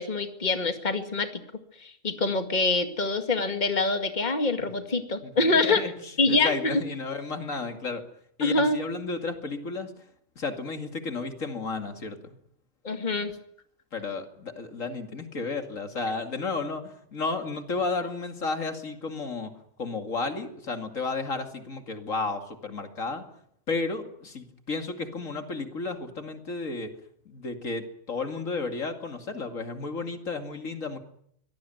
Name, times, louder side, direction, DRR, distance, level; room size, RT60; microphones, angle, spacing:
voice 1, 0.0-1.4 1.8-5.8 6.2-6.8 8.4-8.8 12.8-13.3, left 3 dB, 35° left, 7 dB, 2.2 m, -25 dB
voice 2, 5.2-5.9 6.3-8.0 8.4-9.9 10.4-12.3 13.9-23.2 23.7-26.9 27.3-31.0, left 3 dB, 75° left, 6 dB, 2.8 m, -33 dB
24.5 x 18.5 x 9.3 m, 0.71 s
omnidirectional pair, 1.4 m